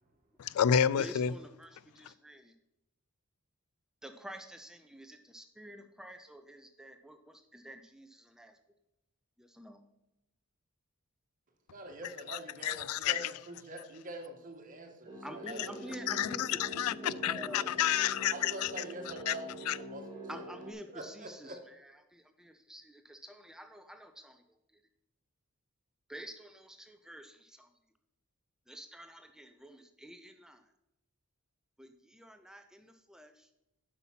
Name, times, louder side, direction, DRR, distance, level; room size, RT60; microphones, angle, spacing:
voice 1, 0.4-1.3 12.3-13.3 15.6-15.7 16.1-18.7 19.3-19.4 19.7-19.8, left 9 dB, 75° left, 0.4 m, -30 dB
voice 2, 0.9-2.5 4.0-8.6 9.4-9.8 15.2-17.7 20.3-24.4 24.7-24.8 26.1-27.7 28.7-30.7 31.8-33.6, equal, 5° right, 0.5 m, -49 dB
voice 3, 11.7-16.4 17.4-17.5 18.3-20.4 20.9-21.6, right 2 dB, 40° right, 1.5 m, -45 dB
sound 1, 15.0-20.7, right 1 dB, 20° right, 2.2 m, -45 dB
7.9 x 5.8 x 5.7 m
head